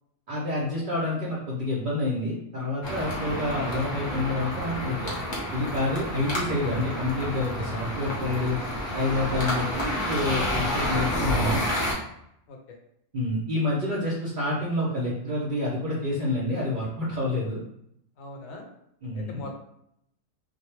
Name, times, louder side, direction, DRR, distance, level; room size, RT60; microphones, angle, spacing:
voice 1, 0.3-5.1 5.5-8.6 8.9-11.7 13.1-17.6 19.0-19.5, left 2 dB, 55° right, -5 dB, 0.5 m, -28 dB
sound 1, 2.8-11.9, equal, 30° left, 0.5 m, -30 dB
voice 2, 18.2-18.6 19.2-19.6, left 2 dB, 85° left, 2 dB, 1.0 m, -40 dB
2.1 x 2.0 x 3.0 m, 0.75 s
omnidirectional pair, 1.4 m